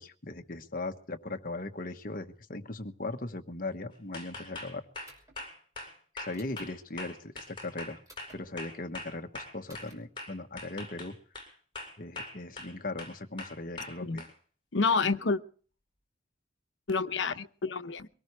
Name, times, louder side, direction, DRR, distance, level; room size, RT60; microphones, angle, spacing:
voice 1, 0.0-4.8 6.1-8.0 8.3-11.1 12.0-14.3, left 2 dB, 50° left, 1.3 m, -39 dB
sound 1, 4.1-9.9 10.2-11.5 11.7-12.7 13.0-14.3, left 2 dB, 30° left, 6.8 m, -42 dB
sound 2, 5.1-5.4 6.3-6.7 8.1-8.4 9.7-10.0, right 1 dB, 20° right, 5.7 m, -55 dB
voice 2, 14.7-15.4 16.9-18.1, left 4 dB, 90° left, 0.9 m, -28 dB
23.5 x 18.5 x 3.2 m
head